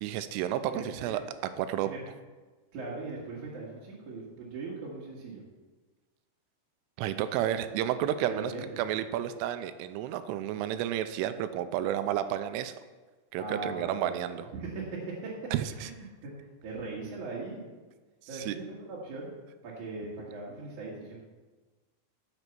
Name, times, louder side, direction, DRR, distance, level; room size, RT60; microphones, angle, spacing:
voice 1, 0.0-1.2 1.6-1.9 7.0-12.7 13.3-14.5 15.5-15.9 18.3-18.6, right 11 dB, 85° right, 11 dB, 3.1 m, -31 dB
voice 2, 0.7-1.2 1.8-2.0 2.7-5.4 8.3-8.8 13.4-14.1 14.5-17.7 18.3-19.3 19.6-21.2, right 3 dB, 55° right, -6 dB, 2.5 m, -40 dB
10.5 x 7.1 x 6.8 m, 1.3 s
omnidirectional pair, 5.7 m